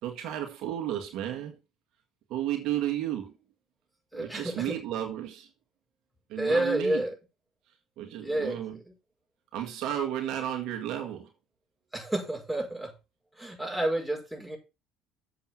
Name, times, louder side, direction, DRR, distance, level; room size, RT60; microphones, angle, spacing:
voice 1, 0.0-1.6 2.3-3.3 4.1-5.5 6.3-7.0 8.0-8.8 9.5-11.3, right 11 dB, 70° right, 1.9 m, -33 dB
voice 2, 4.1-4.8 6.4-7.1 8.2-8.6 11.9-12.9 13.4-14.6, right 1 dB, ahead, 5.7 m, -29 dB
7.5 x 7.0 x 5.8 m
supercardioid pair, 85°, 0 cm